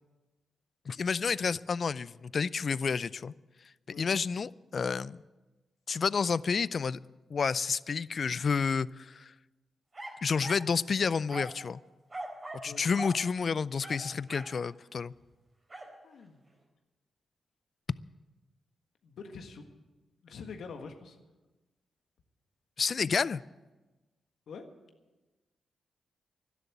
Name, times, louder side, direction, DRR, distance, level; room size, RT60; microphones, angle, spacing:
voice 1, 0.9-3.3 4.0-5.2 5.9-7.0 7.3-9.3 10.2-11.8 12.6-15.1 22.8-23.4, left 5 dB, 55° left, 20 dB, 0.4 m, -30 dB
sound 1, 9.9-10.7 11.3-11.6 12.1-12.7 12.9-13.2 13.8-14.6 15.7-15.9, right 2 dB, 35° right, 4.2 m, -41 dB
voice 2, 16.0-16.4 19.0-19.7 20.2-21.2 24.5-24.6, left 5 dB, 75° left, 5 dB, 1.5 m, -45 dB
12.0 x 10.5 x 8.5 m, 1.2 s
supercardioid pair, 50°, 0 cm